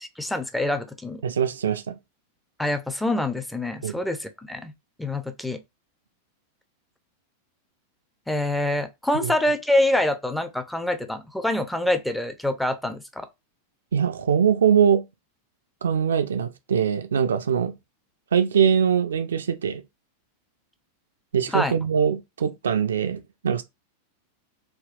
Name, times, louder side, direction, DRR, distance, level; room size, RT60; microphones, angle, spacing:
voice 1, 0.0-1.2 2.6-4.7 5.0-5.6 8.3-13.3 21.5-21.7, left 1 dB, 5° left, 0.4 m, -26 dB
voice 2, 1.2-2.0 3.8-3.9 9.1-9.3 13.9-15.0 15.8-17.7 18.3-19.8 21.3-23.6, right 7 dB, 65° right, 0.3 m, -22 dB
3.5 x 2.2 x 2.4 m
figure-of-eight pair, 90°, 0 cm